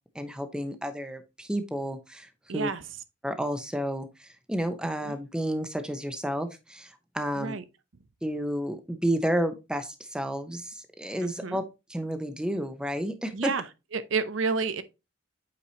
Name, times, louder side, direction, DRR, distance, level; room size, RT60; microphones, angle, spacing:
voice 1, 0.1-2.7 3.2-7.5 8.2-11.6 11.9-13.5, equal, 5° right, 0.8 m, -31 dB
voice 2, 2.5-2.8 5.1-5.2 7.4-7.6 11.2-11.6 13.3-13.6 13.9-14.8, right 4 dB, 85° right, 0.7 m, -30 dB
8.4 x 4.8 x 2.8 m
head